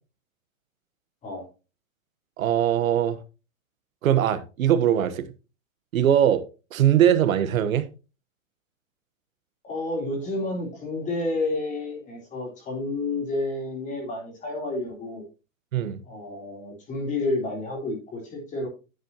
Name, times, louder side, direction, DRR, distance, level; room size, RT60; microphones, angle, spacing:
voice 1, 2.4-3.2 4.0-5.3 5.9-6.4 6.7-7.9 15.7-16.0, right 10 dB, 80° right, 1.2 m, -21 dB
voice 2, 9.6-15.2 16.1-18.7, left 2 dB, 20° left, 3.3 m, -30 dB
10.0 x 7.6 x 2.8 m
hypercardioid pair, 150°, 40 cm